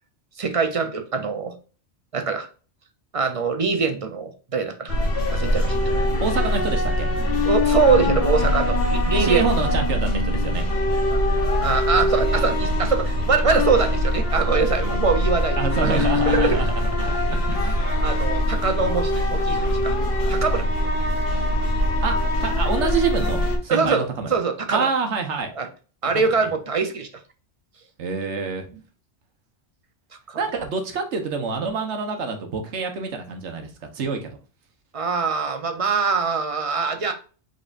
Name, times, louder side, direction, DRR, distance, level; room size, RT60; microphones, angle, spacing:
voice 1, 0.4-1.5 2.1-2.5 3.1-5.0 5.3-5.9 7.5-9.5 11.6-16.0 16.3-16.6 18.0-19.9 20.3-20.7 23.7-24.0 24.3-24.9 25.6-25.7 26.0-27.1 30.3-30.4 34.9-37.1, right 5 dB, 40° right, 7 dB, 0.6 m, -23 dB
sound 1, 4.9-23.6, left 1 dB, 55° left, 1.1 m, -22 dB
voice 2, 6.2-7.1 9.1-10.7 15.6-18.0 22.0-24.3 24.7-25.5 26.1-26.3 28.0-28.7 30.4-34.3, right 4 dB, 80° right, 5 dB, 1.2 m, -27 dB
5.2 x 3.9 x 2.5 m, 0.37 s
omnidirectional pair, 1.2 m